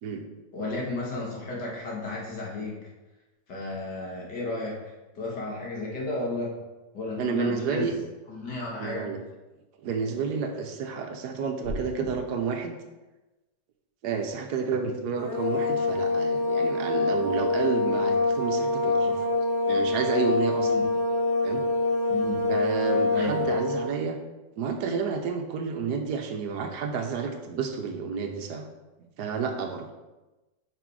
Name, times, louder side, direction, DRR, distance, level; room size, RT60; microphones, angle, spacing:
voice 1, 0.5-2.9 3.5-6.6 6.9-8.0 8.3-9.1 20.6-20.8 22.1-22.5 23.1-23.6, left 2 dB, 70° left, -3 dB, 2.3 m, -33 dB
voice 2, 7.2-7.9 8.8-9.2 9.8-12.8 14.0-19.3 19.7-20.7 21.4-21.6 22.5-24.2 24.6-28.7 29.2-29.9, right 5 dB, 70° right, 4 dB, 1.3 m, -30 dB
sound 1, 11.6-12.1, left 1 dB, 50° left, 2.9 m, -35 dB
sound 2, 15.1-23.9, left 2 dB, 25° left, 2.8 m, -25 dB
6.0 x 5.2 x 4.7 m, 1.1 s
omnidirectional pair, 1.9 m